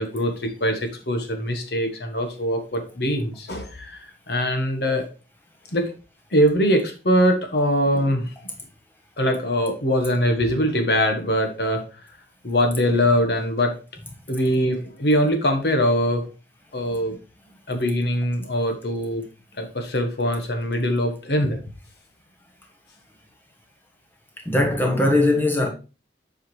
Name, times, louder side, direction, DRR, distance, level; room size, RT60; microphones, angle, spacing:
voice 1, 0.0-4.0 4.3-5.0 5.7-5.9 6.3-8.3 9.2-11.8 12.4-13.7 14.3-16.2 16.7-17.2 17.7-19.2 19.6-21.6, equal, 70° left, 1.3 m, -22 dB
voice 2, 24.5-25.7, left 2 dB, 10° left, 1.2 m, -19 dB
7.4 x 4.9 x 3.1 m
head